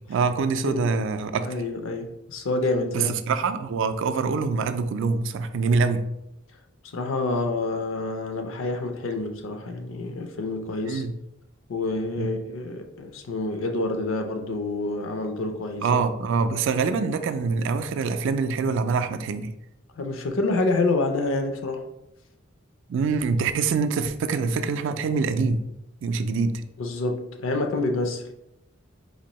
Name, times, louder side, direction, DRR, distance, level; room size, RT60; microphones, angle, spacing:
voice 1, 0.0-1.5 2.9-6.1 10.8-11.1 12.2-12.3 15.8-19.5 22.9-25.6 26.0-26.6, right 4 dB, 60° right, 0.3 m, -25 dB
voice 2, 1.4-3.1 6.9-11.0 11.7-16.0 20.0-21.8 26.8-28.2, left 2 dB, 70° left, 0.5 m, -27 dB
4.2 x 2.7 x 2.9 m
head